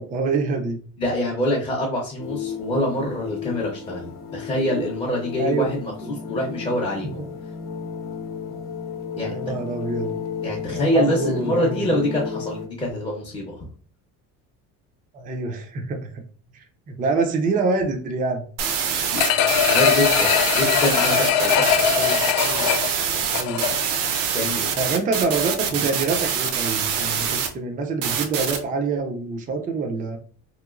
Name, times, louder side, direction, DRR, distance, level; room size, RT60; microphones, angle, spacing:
voice 1, 0.0-0.8 5.4-5.7 6.0-6.3 7.2-7.3 9.2-10.2 10.7-12.0 15.1-16.2 16.5-18.5 21.9-22.7 23.3-23.8 24.7-30.2, right 3 dB, 25° right, 4 dB, 0.4 m, -26 dB
voice 2, 1.0-7.2 9.2-9.3 10.4-13.5 19.1-21.8 24.3-24.7, left 1 dB, 15° left, -4 dB, 0.6 m, -25 dB
sound 1, 2.2-12.7, left 7 dB, 50° left, 0.7 m, -33 dB
sound 2, 18.6-27.5 28.0-28.6, right 7 dB, 80° right, 0.7 m, -25 dB
sound 3, 19.2-24.0 24.4-24.5, left 9 dB, 85° left, 0.6 m, -21 dB
3.0 x 2.9 x 2.4 m, 0.43 s
cardioid pair, 140°, 34 cm